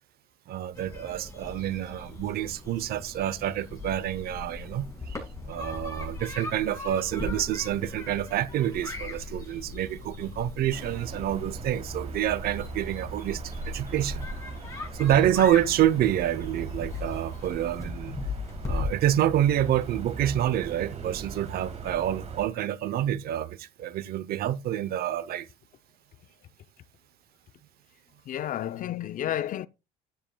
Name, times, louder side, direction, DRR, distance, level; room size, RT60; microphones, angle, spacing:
voice 1, 0.5-5.2 5.5-14.3 15.0-18.1 18.6-25.5, right 11 dB, 65° right, 0.7 m, -27 dB
sound 1, 0.7-18.8, left 3 dB, 20° left, 6.9 m, -39 dB
sound 2, 10.7-22.5, right 4 dB, 40° right, 2.9 m, -40 dB
voice 2, 28.3-29.7, left 11 dB, 50° left, 0.5 m, -31 dB
12.5 x 10.0 x 2.3 m
cardioid pair, 110°, 17 cm